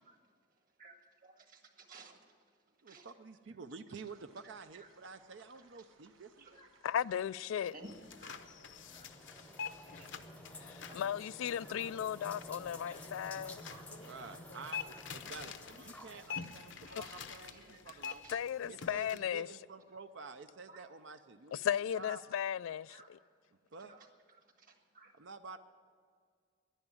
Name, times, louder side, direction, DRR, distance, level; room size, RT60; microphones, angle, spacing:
voice 1, 0.0-3.1 4.4-4.9 5.5-5.8 6.4-6.8 7.7-8.5 8.9-11.0 11.6-11.9 12.4-18.4 20.7-21.2 22.1-22.4 22.9-23.1 23.8-25.2 25.5-25.6, right 2 dB, 45° right, 1.6 m, -59 dB
voice 2, 2.8-6.5 13.9-14.8 15.1-18.2 18.7-21.6 21.9-22.2 23.7-24.0 25.2-25.6, right 4 dB, 65° right, 0.6 m, -50 dB
sound 1, 4.0-17.5, right 4 dB, 85° right, 1.1 m, -68 dB
voice 3, 6.8-7.7 10.6-13.6 16.9-17.0 18.3-19.5 21.5-22.9, left 9 dB, 90° left, 0.3 m, -36 dB
sound 2, 7.7-17.3, left 1 dB, 5° left, 0.7 m, -53 dB
sound 3, 7.8-19.2, left 6 dB, 65° left, 0.7 m, -47 dB
11.0 x 11.0 x 9.7 m
head